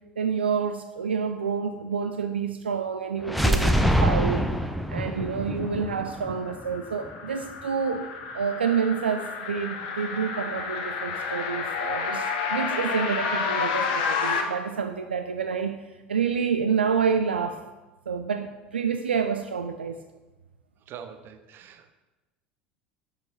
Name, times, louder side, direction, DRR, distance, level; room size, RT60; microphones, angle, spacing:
voice 1, 0.2-4.5 4.9-15.8 16.1-17.6 18.1-20.0, right 6 dB, 75° right, 7 dB, 0.3 m, -28 dB
sound 1, 3.2-7.1, equal, ahead, 0.5 m, -25 dB
sound 2, 6.1-14.4, left 5 dB, 60° left, 0.8 m, -30 dB
voice 2, 20.9-21.9, right 8 dB, 40° right, 9 dB, 0.6 m, -43 dB
6.9 x 5.6 x 4.0 m, 1.1 s
figure-of-eight pair, 70°, 6 cm